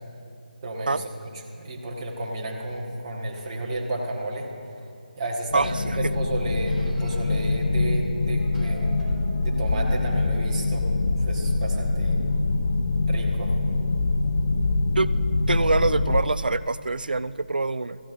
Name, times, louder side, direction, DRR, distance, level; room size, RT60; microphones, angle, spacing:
voice 1, 0.6-1.3 1.6-4.5 5.2-9.0 9.4-12.2 13.1-13.5, right 1 dB, 25° right, -3 dB, 1.4 m, -32 dB
sound 1, 3.4-3.5 4.8-4.9 5.2-7.2 8.0-10.7, right 1 dB, ahead, 2.5 m, -42 dB
sound 2, 5.5-16.2, left 3 dB, 50° left, 0.6 m, -24 dB
voice 2, 5.5-6.0 15.0-15.1 15.5-18.0, right 3 dB, 70° right, 17 dB, 0.3 m, -25 dB
18.5 x 14.0 x 2.5 m, 2.5 s
figure-of-eight pair, 155°, 5 cm